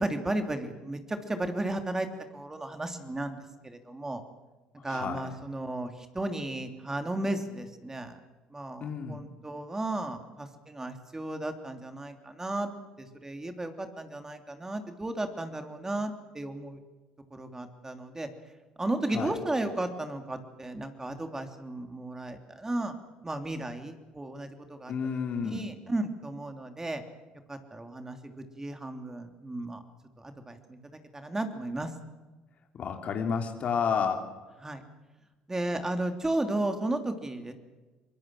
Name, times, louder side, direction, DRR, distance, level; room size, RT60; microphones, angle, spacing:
voice 1, 0.0-2.1 2.3-3.4 3.6-4.2 4.8-8.1 8.5-12.7 13.0-16.8 17.3-18.3 18.8-22.9 23.2-24.9 25.4-27.0 27.5-29.8 30.2-30.8 31.1-31.9 34.6-34.8 35.5-37.5, right 1 dB, 15° right, 6 dB, 3.1 m, -34 dB
voice 2, 4.8-5.3 8.8-9.2 19.1-19.4 24.9-25.6 32.8-34.2, left 6 dB, 50° left, 4 dB, 3.2 m, -31 dB
24.0 x 21.5 x 7.7 m, 1.2 s
hypercardioid pair, 65°, 3 cm